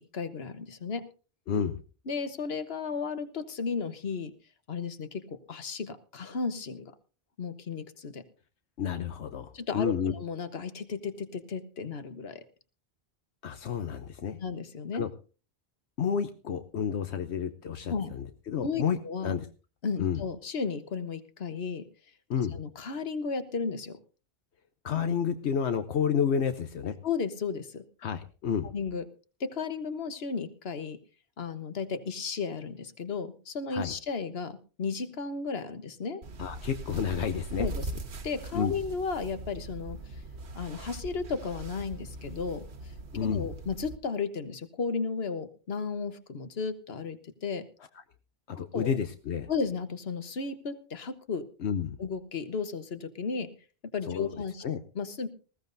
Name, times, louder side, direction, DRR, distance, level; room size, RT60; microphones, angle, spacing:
voice 1, 0.1-1.0 2.1-4.3 4.7-6.9 7.4-8.2 9.5-12.4 14.4-15.0 17.9-18.1 18.6-19.3 19.8-21.8 22.5-24.0 27.0-27.8 28.7-29.0 29.4-31.0 31.4-36.2 37.6-37.9 38.2-40.0 40.5-42.9 43.2-47.6 48.7-48.9 49.5-51.5 52.0-53.5 53.9-54.6 54.9-55.3, left 5 dB, 65° left, 11 dB, 1.4 m, -34 dB
voice 2, 1.5-1.8 8.8-10.1 13.4-14.4 14.9-15.1 16.0-19.0 19.2-19.5 20.0-20.2 22.3-22.6 24.8-27.0 28.0-28.7 33.7-33.9 36.4-37.7 38.5-38.7 43.1-43.5 48.5-49.5 51.6-51.9 54.1-54.4 54.6-54.8, left 7 dB, 85° left, 9 dB, 1.1 m, -30 dB
sound 1, 36.2-44.0, right 2 dB, 80° right, 1.5 m, -40 dB
20.0 x 15.5 x 2.7 m, 0.36 s
omnidirectional pair, 1.1 m